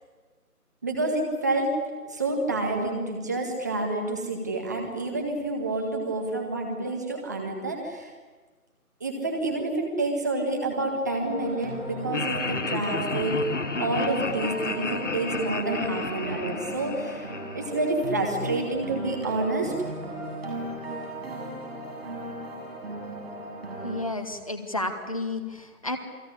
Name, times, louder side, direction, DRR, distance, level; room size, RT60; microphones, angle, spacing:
voice 1, 0.8-1.7 2.1-8.1 9.0-13.4 13.8-17.2 17.5-19.9, right 2 dB, 10° right, 1 dB, 1.7 m, -28 dB
sound 1, 11.2-24.0, right 1 dB, 40° right, 7.5 m, -36 dB
Laughter, 12.1-18.3, left 4 dB, 50° left, 1.1 m, -32 dB
voice 2, 23.8-26.0, left 2 dB, 20° left, 7 dB, 1.4 m, -31 dB
28.5 x 20.5 x 10.0 m, 1.3 s
figure-of-eight pair, 165°, 45 cm